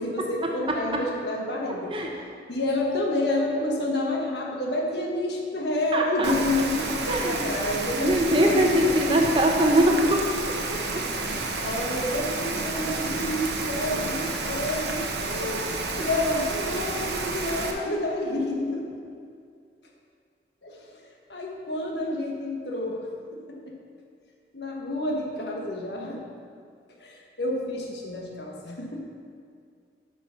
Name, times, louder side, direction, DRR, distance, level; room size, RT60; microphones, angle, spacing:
voice 1, 0.0-1.9 2.5-9.2 10.9-18.9 20.6-23.8 24.5-26.2 27.0-29.0, left 1 dB, 70° left, 0 dB, 1.4 m, -29 dB
voice 2, 5.9-6.3 7.1-7.5 7.9-10.2 10.9-11.0, right 1 dB, 30° right, 0 dB, 1.0 m, -22 dB
Rain, 6.2-17.7, right 3 dB, 70° right, 1.0 m, -30 dB
8.5 x 6.1 x 5.7 m, 2.3 s
head